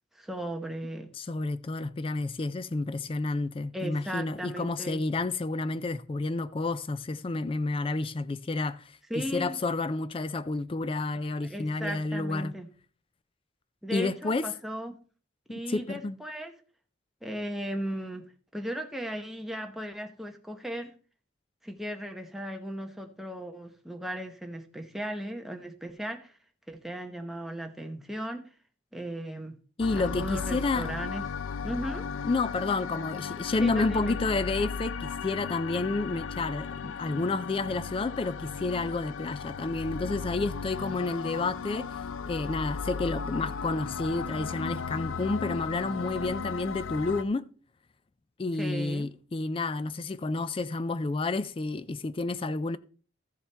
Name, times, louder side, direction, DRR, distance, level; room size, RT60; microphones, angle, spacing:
voice 1, 0.1-1.1 3.7-5.1 9.1-9.6 11.4-12.7 13.8-15.0 15.5-16.5 17.2-20.9 21.6-26.4 26.7-28.5 28.9-29.6 30.0-31.2 31.6-32.1 33.6-34.2 48.6-49.1, right 1 dB, ahead, 0.9 m, -36 dB
voice 2, 1.1-12.5 13.9-14.5 15.7-16.2 29.8-30.9 32.2-47.5 48.4-52.8, left 3 dB, 25° left, 0.3 m, -30 dB
sound 1, 29.8-47.2, left 5 dB, 85° left, 0.5 m, -36 dB
14.0 x 7.1 x 3.4 m
head